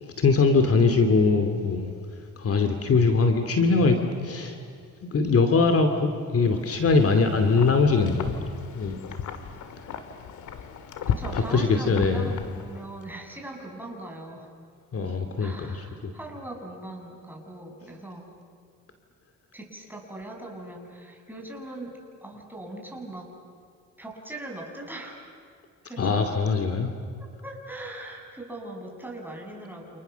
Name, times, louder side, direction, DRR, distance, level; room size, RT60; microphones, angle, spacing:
voice 1, 0.0-4.6 5.1-8.4 8.8-9.0 11.3-12.4 14.9-16.1 26.0-26.9, left 4 dB, 50° left, 6 dB, 2.6 m, -22 dB
Wind, 6.5-13.0, left 7 dB, 75° left, 2.2 m, -36 dB
voice 2, 11.0-14.5 15.4-18.3 19.5-23.3 24.0-25.2 25.8-26.2 27.2-30.0, right 1 dB, 5° right, 0 dB, 7.0 m, -40 dB
29.5 x 28.5 x 7.0 m, 2.3 s
cardioid pair, 90°, 30 cm